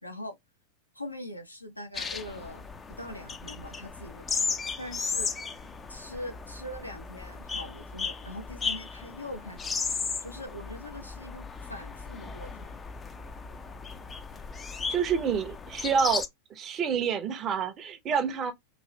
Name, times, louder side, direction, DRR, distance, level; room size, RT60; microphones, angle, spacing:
voice 1, 0.0-0.4 0.9-5.3 5.9-12.8, left 1 dB, 85° left, 0.7 m, -42 dB
sound 1, 1.9-16.3, left 5 dB, 15° left, 0.4 m, -36 dB
voice 2, 14.9-16.2 16.5-18.5, right 7 dB, 30° right, 0.7 m, -28 dB
3.0 x 2.6 x 2.8 m
figure-of-eight pair, 90°, 0 cm